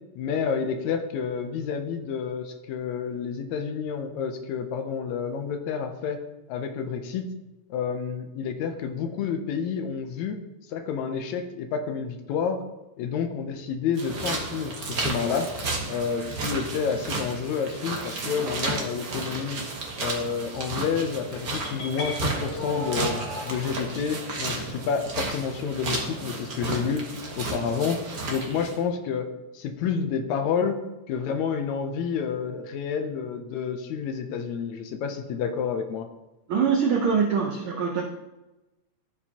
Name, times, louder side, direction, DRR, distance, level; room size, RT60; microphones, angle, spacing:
voice 1, 0.2-6.2 6.5-7.3 7.7-10.4 10.7-12.6 13.0-15.5 15.9-19.6 20.0-23.2 23.5-27.0 27.4-28.0 28.3-29.3 29.5-30.8 31.1-36.1, left 6 dB, 80° left, 6 dB, 2.0 m, -29 dB
sound 1, 13.9-28.8, right 3 dB, 55° right, 1.0 m, -33 dB
sound 2, 21.5-23.5, left 2 dB, 50° left, 1.5 m, -35 dB
voice 2, 36.5-38.0, right 6 dB, 75° right, 0 dB, 1.1 m, -23 dB
14.0 x 4.7 x 2.9 m, 1.0 s
omnidirectional pair, 3.3 m